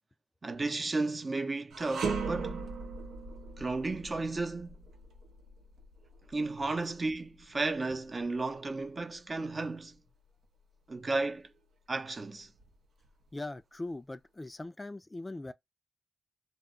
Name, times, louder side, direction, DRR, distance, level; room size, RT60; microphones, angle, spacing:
voice 1, 0.4-2.7 3.6-4.7 6.3-10.0 10.9-11.5 11.9-12.5, right 3 dB, 40° right, 0.6 m, -33 dB
sound 1, 1.7-11.0 11.4-11.6 12.4-13.3, right 4 dB, 85° right, 0.6 m, -40 dB
voice 2, 13.3-15.5, left 2 dB, 25° left, 0.3 m, -40 dB
2.2 x 2.0 x 3.6 m
supercardioid pair, 50°, 0 cm